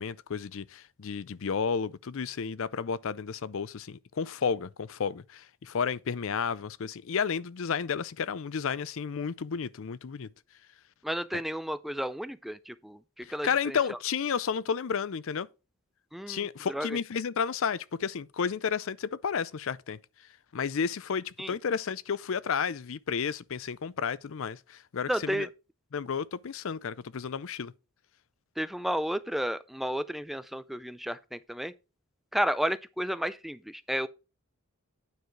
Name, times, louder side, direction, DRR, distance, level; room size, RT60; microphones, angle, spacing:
voice 1, 0.0-10.3 13.2-15.5 16.3-20.0 20.5-25.5 25.9-27.7, left 6 dB, 60° left, 0.5 m, -32 dB
voice 2, 11.0-14.0 16.1-16.9 21.4-21.5 25.1-25.5 28.6-31.7 32.3-34.1, equal, ahead, 0.3 m, -32 dB
9.3 x 4.8 x 5.8 m
head